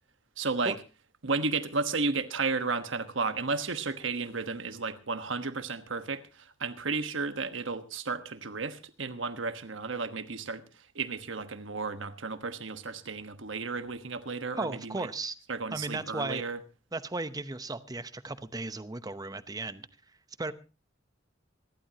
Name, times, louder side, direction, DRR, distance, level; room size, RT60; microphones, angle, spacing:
voice 1, 0.4-0.8 1.2-10.6 10.9-15.1 15.5-16.6, right 4 dB, 70° right, 1.3 m, -33 dB
voice 2, 14.5-15.4 15.7-16.4 16.9-19.9 20.4-20.5, right 2 dB, 20° right, 0.8 m, -35 dB
26.0 x 12.0 x 2.9 m
head